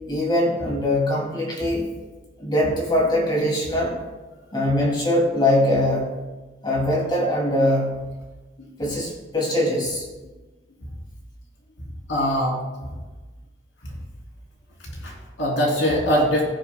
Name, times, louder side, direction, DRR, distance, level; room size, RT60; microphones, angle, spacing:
voice 1, 0.1-1.8 2.4-4.0 4.5-6.2 6.6-8.1 8.8-10.1, left 1 dB, 25° left, -2 dB, 2.7 m, -22 dB
voice 2, 12.1-12.9 13.8-13.9 14.8-16.4, equal, 80° left, -2 dB, 3.3 m, -23 dB
19.5 x 7.1 x 2.3 m, 1.2 s
head